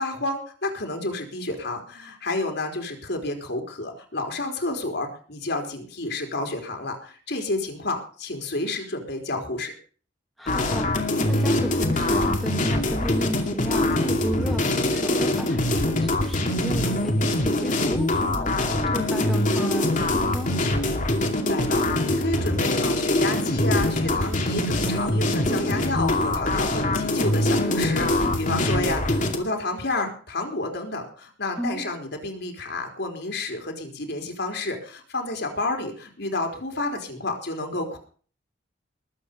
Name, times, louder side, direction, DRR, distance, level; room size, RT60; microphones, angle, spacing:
voice 1, 0.0-9.7 19.1-19.5 21.1-38.0, left 2 dB, 65° left, 4 dB, 4.0 m, -30 dB
voice 2, 10.4-18.5 18.9-20.5 25.5-25.8 31.6-31.9, equal, ahead, 3 dB, 2.4 m, -33 dB
sound 1, 10.5-29.4, left 1 dB, 45° left, 2.6 m, -23 dB
20.5 x 8.6 x 5.4 m, 0.42 s
head